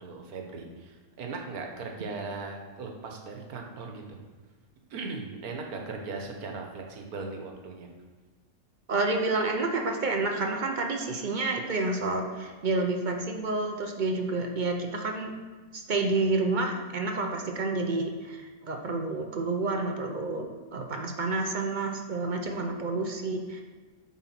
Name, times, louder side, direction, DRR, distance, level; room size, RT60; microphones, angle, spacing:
voice 1, 0.0-4.2 4.9-7.9, right 3 dB, 85° right, 2 dB, 1.5 m, -38 dB
voice 2, 8.9-15.3 15.7-23.6, right 3 dB, 45° right, 3 dB, 0.7 m, -29 dB
8.2 x 4.2 x 5.9 m, 1.4 s
omnidirectional pair, 1.5 m